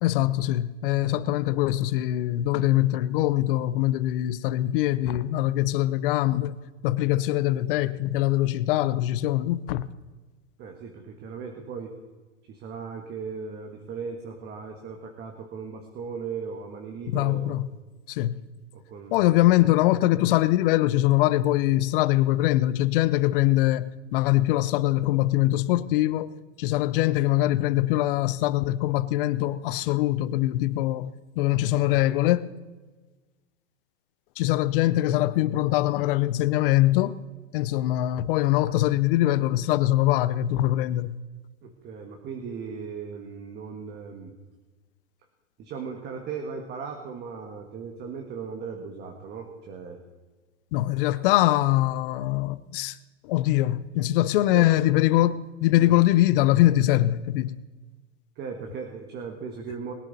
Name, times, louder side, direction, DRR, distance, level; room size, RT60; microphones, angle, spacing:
voice 1, 0.0-6.6 6.8-9.9 17.1-17.7 18.1-18.4 19.1-26.3 26.6-32.5 34.4-37.2 37.5-41.2 50.7-53.0 53.2-57.6, left 15 dB, 45° left, 0.8 m, -23 dB
voice 2, 10.6-12.0 12.4-17.6 18.7-19.3 41.6-44.3 45.6-50.0 54.5-54.7 55.8-56.0 58.4-59.9, right 5 dB, 25° right, 1.7 m, -37 dB
21.0 x 9.9 x 4.1 m
hypercardioid pair, 130°, 37 cm